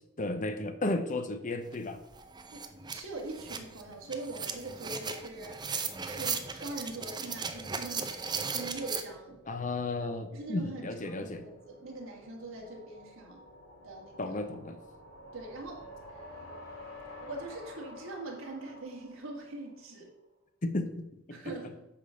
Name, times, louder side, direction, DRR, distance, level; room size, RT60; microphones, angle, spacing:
voice 1, 0.2-2.0 9.5-11.4 14.2-14.8 20.6-21.5, left 2 dB, 35° left, 8 dB, 0.7 m, -34 dB
sound 1, 1.7-1.8 2.1-9.0, right 5 dB, 20° right, 0.6 m, -37 dB
voice 2, 2.5-5.6 6.1-9.4 10.3-13.4 13.8-14.4 15.3-15.9 16.1-16.2 17.2-20.1 21.3-21.9, right 2 dB, 75° right, -1 dB, 1.9 m, -42 dB
sound 2, 5.3-20.0, left 1 dB, 80° left, 2.5 m, -52 dB
8.5 x 3.8 x 6.5 m, 0.92 s
head